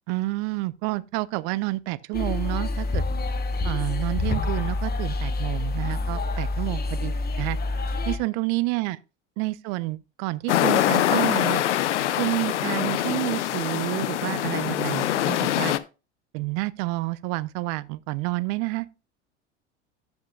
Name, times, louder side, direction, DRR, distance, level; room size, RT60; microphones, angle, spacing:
voice 1, 0.1-3.0 3.6-7.6 8.1-9.0 9.4-11.6 12.2-15.7 16.3-18.9, right 21 dB, 55° right, 0.6 m, -29 dB
sound 1, 2.1-8.2, left 2 dB, 25° left, 1.3 m, -27 dB
sound 2, 10.5-15.8, left 12 dB, 80° left, 0.6 m, -24 dB
13.0 x 5.8 x 2.3 m
hypercardioid pair, 75°, 35 cm